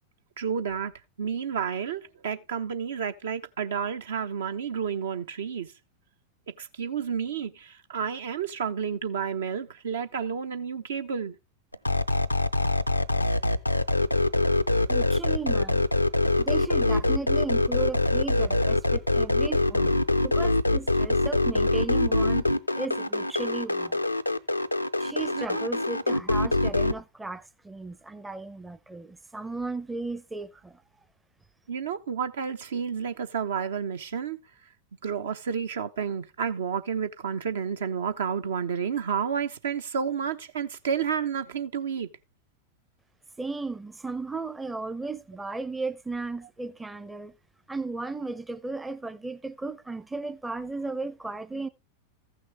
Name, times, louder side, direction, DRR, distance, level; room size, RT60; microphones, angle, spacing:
voice 1, 0.4-0.9 1.2-5.7 6.6-11.4 25.3-25.6 31.7-34.4 35.0-42.1, right 7 dB, 65° right, 0.8 m, -30 dB
sound 1, 11.7-26.9, left 2 dB, 90° left, 0.5 m, -24 dB
voice 2, 14.9-15.9 16.4-22.5 22.7-24.0 25.0-30.8 43.4-47.3 47.7-51.7, right 3 dB, 10° right, 0.6 m, -35 dB
15.0 x 6.4 x 3.3 m
figure-of-eight pair, 90°, 0 cm